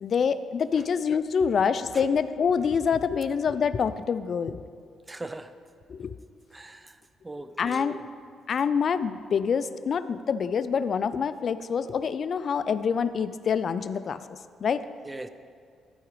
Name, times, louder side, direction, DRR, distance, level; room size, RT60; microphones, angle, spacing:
voice 1, 0.0-4.6 5.9-6.1 7.6-8.0 8.5-14.2 14.6-14.8, left 6 dB, 50° left, 13 dB, 0.3 m, -26 dB
voice 2, 5.1-5.5 6.5-6.9 7.2-8.1 15.0-15.3, right 2 dB, 15° right, 11 dB, 0.5 m, -39 dB
13.5 x 4.8 x 4.7 m, 2.1 s
cardioid pair, 90°, 0 cm